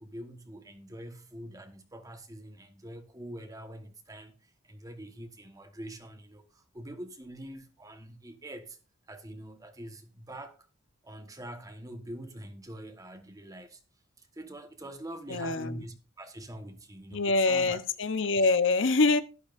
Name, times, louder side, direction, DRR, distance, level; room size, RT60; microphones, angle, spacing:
voice 1, 0.0-4.4 4.6-8.8 9.1-10.6 11.0-13.8 14.2-17.8 18.4-18.5, right 1 dB, 15° right, 1.3 m, -44 dB
voice 2, 15.3-15.7 17.1-19.2, left 3 dB, 65° left, 0.8 m, -25 dB
12.0 x 11.5 x 2.6 m
head